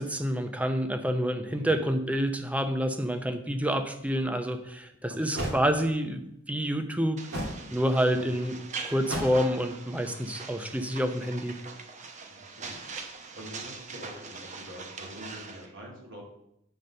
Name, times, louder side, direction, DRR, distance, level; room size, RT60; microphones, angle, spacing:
voice 1, 0.0-7.2 7.7-11.6, equal, 5° right, 7 dB, 0.7 m, -28 dB
sound 1, 4.4-4.5 5.3-5.6 7.3-7.6 9.0-9.5, equal, 90° right, 2.7 m, -32 dB
voice 2, 5.0-5.5 8.1-8.3 12.3-12.8 13.2-16.3, equal, 60° right, -3 dB, 3.0 m, -46 dB
sound 2, 7.2-15.7, right 4 dB, 35° right, 0.9 m, -42 dB
9.4 x 4.1 x 6.5 m, 0.79 s
head